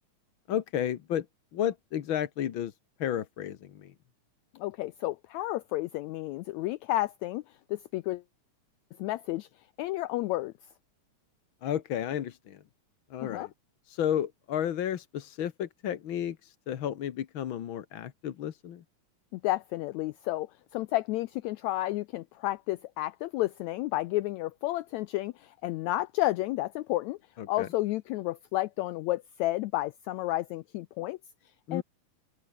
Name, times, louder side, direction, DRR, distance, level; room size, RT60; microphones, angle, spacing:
voice 1, 0.5-1.2 1.5-2.7 3.0-3.9 11.6-12.6 13.1-13.5 13.9-18.8 27.4-27.7 31.7-31.8, left 10 dB, 60° left, 1.4 m, -32 dB
voice 2, 4.6-7.4 7.7-8.2 9.0-9.5 9.8-10.5 13.2-13.5 19.3-27.2 27.5-31.2 31.7-31.8, left 17 dB, 80° left, 1.6 m, -31 dB
omnidirectional pair, 3.7 m